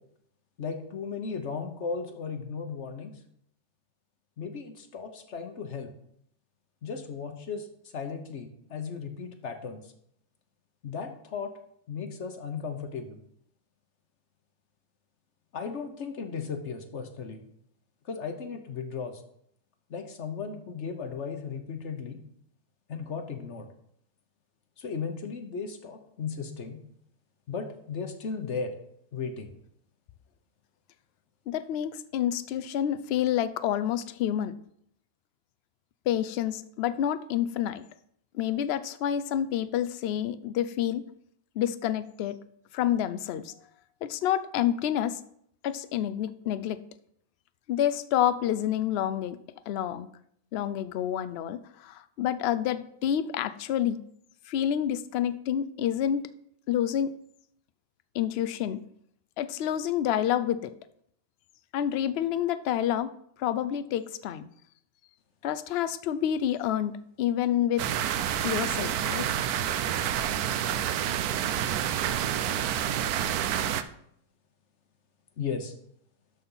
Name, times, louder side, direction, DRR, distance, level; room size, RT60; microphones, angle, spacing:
voice 1, 0.6-3.1 4.4-5.9 6.8-7.7 7.9-9.8 10.8-11.5 11.9-13.2 15.5-17.4 18.0-19.2 19.9-22.2 22.9-23.7 24.8-26.8 27.5-28.7 29.1-29.5 75.4-75.7, left 5 dB, 50° left, 7 dB, 1.2 m, -36 dB
voice 2, 31.5-34.5 36.1-37.8 38.3-41.0 41.6-42.4 42.7-43.5 44.0-45.2 45.6-46.8 47.7-49.4 49.7-50.1 50.5-54.0 54.5-56.3 56.7-57.2 58.1-58.8 59.4-60.7 61.7-63.1 63.4-64.5 65.4-67.9 68.4-69.3, left 10 dB, 70° left, 14 dB, 0.6 m, -28 dB
sound 1, 67.8-73.8, right 10 dB, 80° right, 1.1 m, -28 dB
12.5 x 4.2 x 5.5 m, 0.70 s
omnidirectional pair, 1.6 m